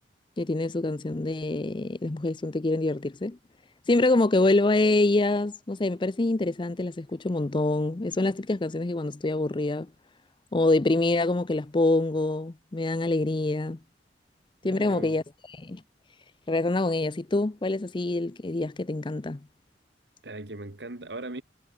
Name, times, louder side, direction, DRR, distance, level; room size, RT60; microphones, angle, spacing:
voice 1, 0.4-3.4 3.9-9.9 10.5-13.8 14.6-15.2 15.6-15.8 16.5-19.4, left 2 dB, 30° left, 0.6 m, -25 dB
voice 2, 14.6-15.2 20.2-21.4, right 2 dB, 70° right, 1.9 m, -39 dB
head